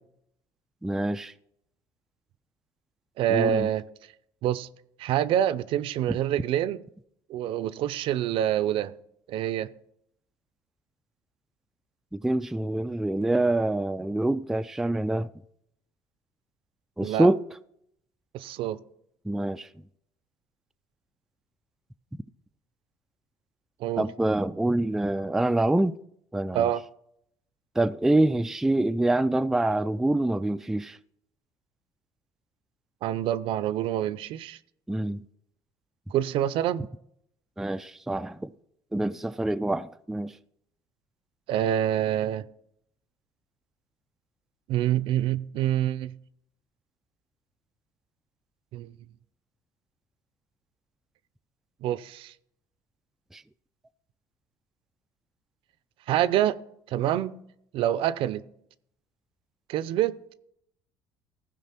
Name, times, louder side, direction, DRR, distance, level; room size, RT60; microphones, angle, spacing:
voice 1, 0.8-1.3 3.3-3.7 12.1-15.3 17.0-17.4 19.3-19.7 24.0-26.0 26.3-26.7 27.8-31.0 34.9-35.2 37.6-38.5 38.9-40.3 53.3-53.4, right 2 dB, 5° right, 0.3 m, -26 dB
voice 2, 3.2-3.8 4.4-4.7 5.0-6.8 7.3-8.9 9.3-9.7 17.0-17.3 18.3-18.8 23.8-24.0 26.5-26.8 33.0-34.6 36.1-36.9 41.5-42.5 44.7-46.2 48.7-48.9 51.8-52.3 56.1-56.6 56.9-57.4 57.7-58.4 59.7-60.2, right 11 dB, 65° right, 0.5 m, -26 dB
15.0 x 5.1 x 5.9 m
supercardioid pair, 95°, 10 cm